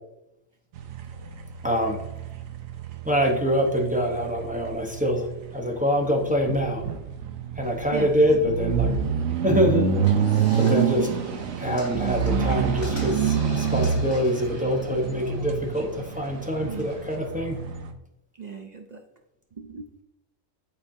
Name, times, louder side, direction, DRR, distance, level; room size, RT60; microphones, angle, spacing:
sound 1, 0.7-17.9, right 7 dB, 90° right, 1.1 m, -27 dB
voice 1, 1.6-2.0 3.0-5.3 5.5-6.9 7.6-8.9 9.4-9.9 10.6-11.1 11.6-17.6, equal, 10° right, 0 dB, 0.6 m, -24 dB
voice 2, 7.9-8.5 16.7-17.1 18.4-19.0 19.6-20.0, right 5 dB, 55° right, 3 dB, 0.5 m, -38 dB
sound 2, 10.0-17.1, left 2 dB, 55° left, 1.9 m, -44 dB
9.4 x 4.2 x 2.6 m, 0.89 s
omnidirectional pair, 1.4 m